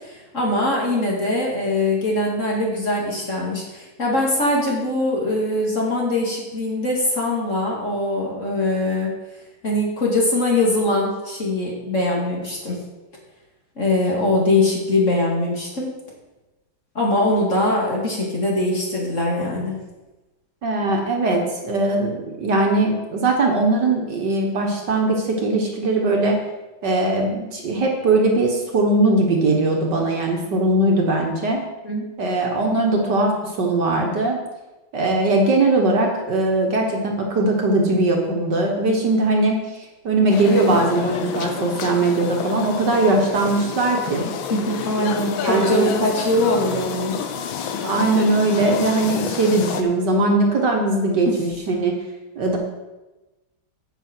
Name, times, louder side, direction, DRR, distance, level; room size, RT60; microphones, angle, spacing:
voice 1, 0.0-9.1 9.6-12.8 13.8-15.9 16.9-19.7 31.8-32.0 44.5-47.2 51.2-51.4, left 1 dB, 35° left, -3 dB, 2.6 m, -22 dB
voice 2, 20.6-26.4 26.8-31.6 32.2-34.4 34.9-39.6 40.0-44.2 45.4-45.9 47.8-51.9 52.4-52.6, right 2 dB, 60° right, 1 dB, 2.0 m, -20 dB
sound 1, 40.3-49.8, left 7 dB, 75° left, 1.6 m, -29 dB
9.9 x 8.4 x 4.6 m, 1.1 s
omnidirectional pair, 2.2 m